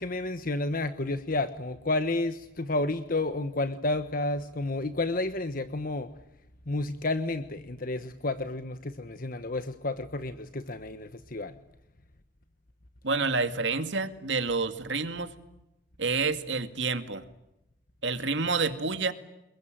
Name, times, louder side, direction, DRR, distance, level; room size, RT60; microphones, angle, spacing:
voice 1, 0.0-6.1 6.7-11.5, left 2 dB, 50° left, 10 dB, 1.3 m, -31 dB
voice 2, 13.0-15.3 16.0-17.2 18.0-19.1, right 4 dB, 75° right, 9 dB, 2.3 m, -28 dB
28.0 x 22.0 x 9.2 m, 0.90 s
head